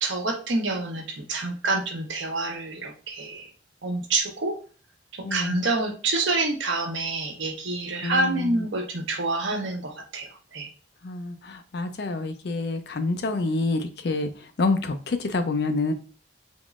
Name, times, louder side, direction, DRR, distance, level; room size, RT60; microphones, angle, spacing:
voice 1, 0.0-3.5 3.8-4.6 5.1-10.7, right 2 dB, 90° right, 3 dB, 0.9 m, -27 dB
voice 2, 5.2-5.6 8.0-8.6 11.0-14.3 14.6-15.9, left 3 dB, 60° left, 8 dB, 0.5 m, -27 dB
3.6 x 3.0 x 2.4 m, 0.37 s
head